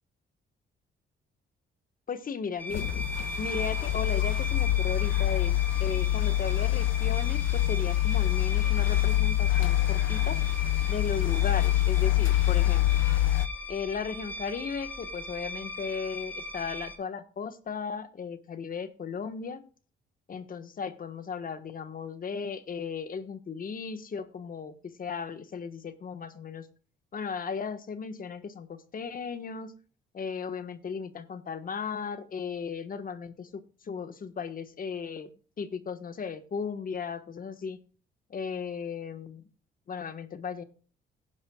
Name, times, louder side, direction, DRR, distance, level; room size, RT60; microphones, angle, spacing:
voice 1, 2.1-2.9 3.4-10.4 10.9-13.1 13.7-19.6 20.3-26.7 27.1-29.7 30.1-35.3 35.6-37.8 38.3-39.4 39.9-40.6, left 6 dB, 45° left, 10 dB, 1.4 m, -36 dB
sound 1, 2.6-17.0, left 1 dB, 10° left, 2.2 m, -39 dB
sound 2, 2.7-13.5, left 15 dB, 80° left, 0.6 m, -25 dB
17.5 x 10.5 x 2.3 m, 0.40 s
cardioid pair, 90°, 20 cm